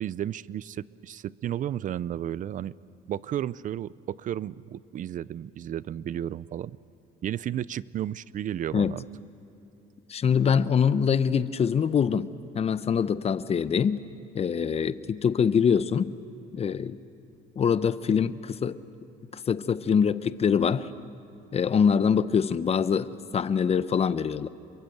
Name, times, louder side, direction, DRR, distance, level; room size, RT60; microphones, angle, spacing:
voice 1, 0.0-2.8 3.1-6.8 7.2-9.0, right 11 dB, 50° right, 19 dB, 0.6 m, -33 dB
voice 2, 10.1-12.3 12.5-14.0 14.3-16.1 16.5-17.0 17.6-18.8 19.3-20.9 21.5-24.5, left 7 dB, 35° left, 14 dB, 0.8 m, -24 dB
28.5 x 23.0 x 8.0 m, 2.9 s
cardioid pair, 110°, 17 cm